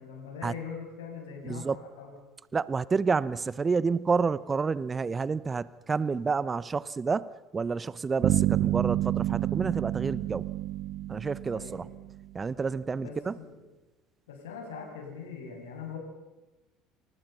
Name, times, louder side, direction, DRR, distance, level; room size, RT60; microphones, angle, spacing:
voice 1, 0.0-2.1 11.5-11.9 13.0-13.6 14.3-16.0, left 6 dB, 75° left, 4 dB, 6.9 m, -41 dB
voice 2, 1.4-1.8 2.5-10.5 11.1-11.9 12.3-13.4, right 5 dB, 25° right, 19 dB, 0.9 m, -29 dB
sound 1, 8.2-12.2, right 14 dB, 55° right, 1.5 m, -28 dB
29.0 x 28.0 x 5.7 m, 1.1 s
figure-of-eight pair, 65°, 0 cm